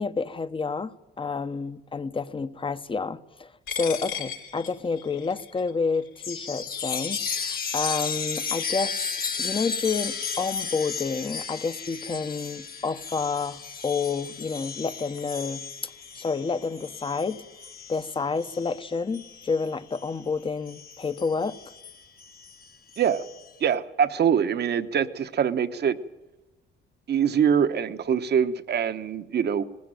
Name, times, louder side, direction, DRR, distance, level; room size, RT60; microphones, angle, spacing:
voice 1, 0.0-7.2 7.7-17.4 17.9-21.6, left 4 dB, 25° left, 1.0 m, -29 dB
Coin (dropping), 3.7-10.4, left 8 dB, 75° left, 5.2 m, -39 dB
Chime, 6.2-20.2 20.7-23.5, left 6 dB, 50° left, 1.7 m, -34 dB
voice 2, 23.6-26.0 27.1-29.6, right 8 dB, 55° right, 1.2 m, -24 dB
19.5 x 16.0 x 9.1 m
cardioid pair, 90°, 20 cm